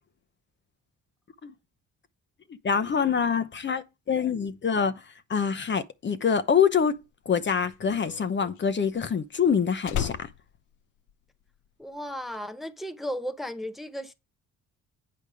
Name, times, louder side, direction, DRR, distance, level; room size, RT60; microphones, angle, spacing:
voice 1, 2.6-5.0 5.3-7.0 7.3-10.3, left 6 dB, 40° left, 0.9 m, -25 dB
Slam, 6.9-11.7 11.9-12.4, left 10 dB, 80° left, 0.7 m, -36 dB
voice 2, 11.8-14.1, equal, ahead, 0.8 m, -35 dB
8.7 x 5.2 x 4.9 m
cardioid pair, 90°, 30 cm